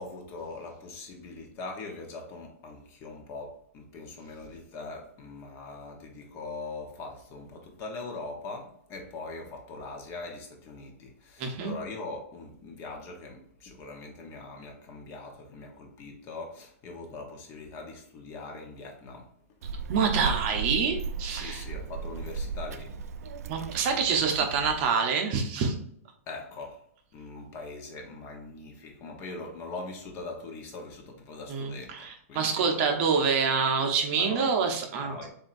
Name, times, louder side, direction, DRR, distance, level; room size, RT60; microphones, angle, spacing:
voice 1, 0.0-19.3 21.3-22.9 26.3-26.9 27.1-32.9 34.2-34.5 35.0-35.3, left 3 dB, 30° left, 1.0 m, -41 dB
voice 2, 11.4-11.7 19.9-21.6 23.5-25.7 31.5-35.2, right 5 dB, 40° right, 0.9 m, -26 dB
Child speech kid speaking, 19.6-24.9, right 4 dB, 80° right, 0.4 m, -35 dB
7.2 x 2.7 x 2.5 m
hypercardioid pair, 155°, 8 cm